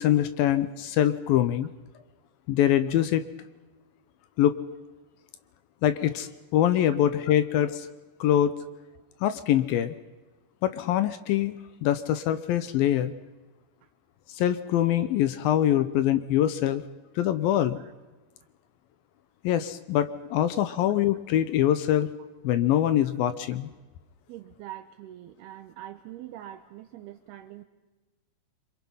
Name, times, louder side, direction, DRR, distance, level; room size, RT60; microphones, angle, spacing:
voice 1, 0.0-1.7 2.5-3.3 4.4-4.6 5.8-7.9 8.2-8.5 9.2-9.9 10.6-11.5 11.8-13.1 14.4-16.8 17.2-17.8 19.4-22.1 22.4-23.7, left 11 dB, 75° left, 12 dB, 2.5 m, -24 dB
voice 2, 24.3-27.6, right 13 dB, 85° right, 5 dB, 2.9 m, -44 dB
26.5 x 25.0 x 5.6 m, 1.2 s
omnidirectional pair, 4.5 m